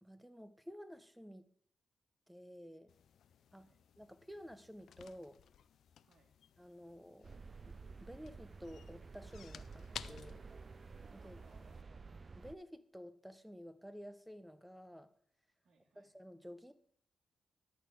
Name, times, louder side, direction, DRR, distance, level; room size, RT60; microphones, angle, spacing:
voice 1, 0.0-1.4 2.3-2.9 3.5-3.6 4.0-5.4 6.6-7.4 7.7-10.4 11.1-11.4 12.4-15.1 15.9-16.7, equal, 5° right, 12 dB, 0.9 m, -52 dB
sound 1, 2.9-11.8, left 8 dB, 80° left, 0.4 m, -56 dB
voice 2, 3.5-3.8 6.0-6.3 11.2-12.1 15.6-16.1, right 3 dB, 70° right, -1 dB, 2.0 m, -71 dB
sound 2, 7.2-12.6, right 4 dB, 40° right, 0.4 m, -52 dB
12.0 x 4.2 x 7.7 m, 0.66 s
cardioid pair, 65°, 0 cm